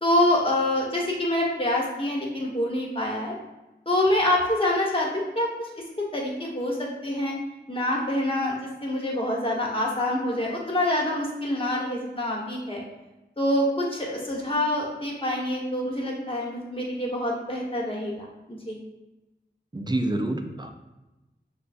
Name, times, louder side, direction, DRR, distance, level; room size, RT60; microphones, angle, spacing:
voice 1, 0.0-3.3 3.9-5.7 6.1-7.3 7.7-12.8 13.4-18.8, left 1 dB, 30° left, -2 dB, 1.2 m, -26 dB
voice 2, 19.7-20.7, right 1 dB, 20° right, 5 dB, 0.5 m, -27 dB
6.4 x 2.3 x 2.5 m, 1.0 s
cardioid pair, 40°, 19 cm